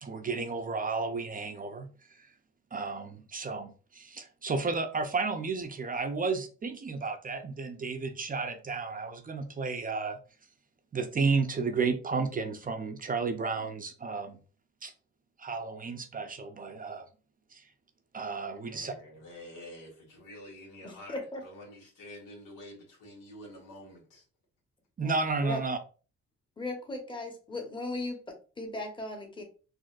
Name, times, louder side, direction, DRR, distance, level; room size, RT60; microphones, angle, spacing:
voice 1, 0.0-2.3 2.7-10.2 10.9-14.4 14.8-14.9 15.4-17.0 17.5-17.7 18.1-18.9 25.0-25.8, right 4 dB, 30° right, 0.5 m, -32 dB
voice 2, 18.7-24.2, left 1 dB, 90° left, 1.6 m, -48 dB
voice 3, 20.8-21.4 25.0-25.6 26.6-29.4, left 2 dB, 15° left, 1.0 m, -37 dB
3.9 x 2.5 x 2.4 m
cardioid pair, 90°, 30 cm